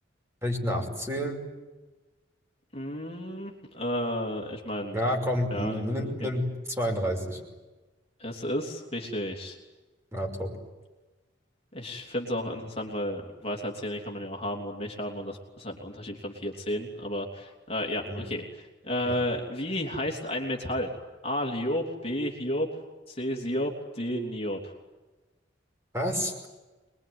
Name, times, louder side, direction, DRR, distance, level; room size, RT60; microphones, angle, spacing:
voice 1, 0.4-1.4 4.9-7.4 10.1-10.5 18.1-18.3 19.1-19.2 25.9-26.3, equal, 15° right, 2 dB, 5.7 m, -29 dB
voice 2, 2.7-5.0 5.5-6.3 8.2-9.6 11.7-21.0 21.2-22.7 23.1-24.7, left 1 dB, 35° left, 1 dB, 3.2 m, -32 dB
25.5 x 22.0 x 9.6 m, 1.2 s
head